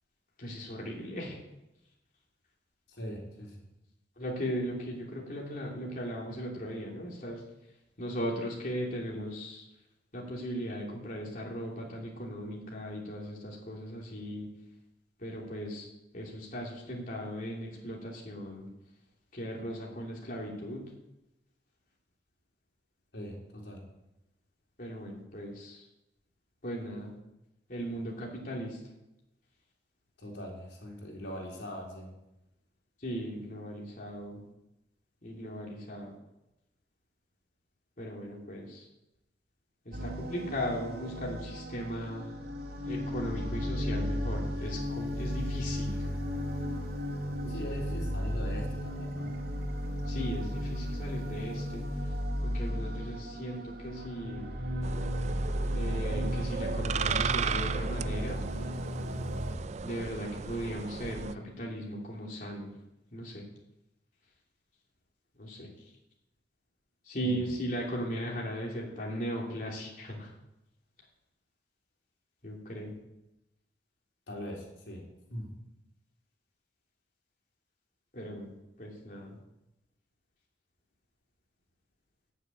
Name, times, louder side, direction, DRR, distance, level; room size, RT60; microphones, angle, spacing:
voice 1, 0.4-1.4 4.2-7.4 8.0-9.6 10.1-14.5 15.2-15.9 16.1-18.7 19.3-20.8 24.8-25.8 26.6-27.1 27.7-28.8 33.0-34.4 35.2-36.1 38.0-38.8 39.8-42.3 42.9-46.1 47.4-47.6 50.1-51.9 52.4-54.5 55.7-58.5 59.8-62.7 63.1-63.4 65.4-65.7 67.0-70.3 72.4-73.0 78.1-78.5 78.8-79.4, equal, 50° left, -3 dB, 3.1 m, -37 dB
voice 2, 2.9-3.6 23.1-23.8 30.2-32.1 47.5-49.3 67.2-67.5 74.3-75.5, equal, 85° left, -1 dB, 3.9 m, -41 dB
sound 1, 39.9-59.5, equal, 60° right, 2.7 m, -34 dB
sound 2, 54.8-61.4, right 6 dB, 40° right, 0.4 m, -36 dB
14.5 x 7.5 x 9.0 m, 0.92 s
head